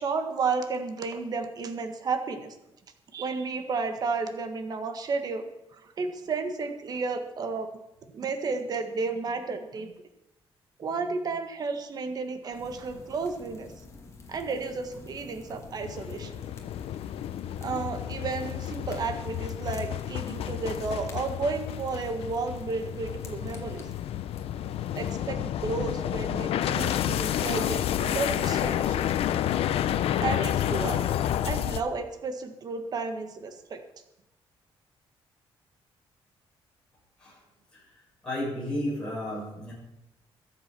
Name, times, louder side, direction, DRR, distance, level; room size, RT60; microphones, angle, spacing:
voice 1, 0.0-2.6 3.1-5.5 5.7-7.7 8.1-9.9 10.8-13.7 14.3-16.3 17.6-23.8 25.0-29.1 30.2-31.1 31.4-33.8, right 4 dB, 40° right, 7 dB, 1.6 m, -32 dB
sound 1, 12.5-25.1, left 3 dB, 30° left, 2.2 m, -48 dB
sound 2, 15.8-31.8, left 11 dB, 80° left, 0.8 m, -30 dB
voice 2, 38.2-39.7, left 1 dB, 10° left, -7 dB, 7.3 m, -32 dB
22.0 x 7.6 x 6.1 m, 0.91 s
cardioid pair, 170°, 10 cm